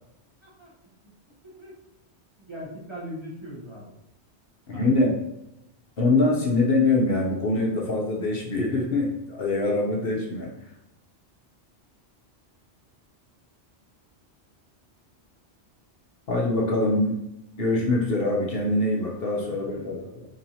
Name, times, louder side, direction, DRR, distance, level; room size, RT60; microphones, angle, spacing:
voice 1, 0.4-0.7 1.0-1.1 1.6-1.8 2.4-3.9 4.7-5.1 19.4-20.1, equal, 25° right, -7 dB, 1.0 m, -40 dB
voice 2, 4.7-5.1 6.0-10.5 16.3-17.2 17.6-20.2, left 2 dB, 60° left, -2 dB, 0.9 m, -24 dB
4.4 x 3.0 x 2.7 m, 0.83 s
omnidirectional pair, 1.2 m